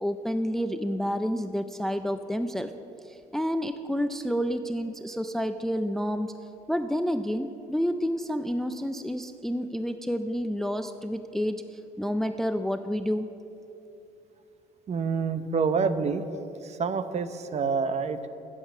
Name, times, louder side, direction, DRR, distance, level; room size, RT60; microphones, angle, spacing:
voice 1, 0.0-2.7 3.1-6.3 6.7-11.6 12.0-13.3, equal, ahead, 9 dB, 0.4 m, -29 dB
voice 2, 14.9-16.3 16.6-18.3, right 5 dB, 40° right, 11 dB, 0.8 m, -27 dB
15.0 x 7.4 x 7.1 m, 2.8 s
cardioid pair, 110°, 17 cm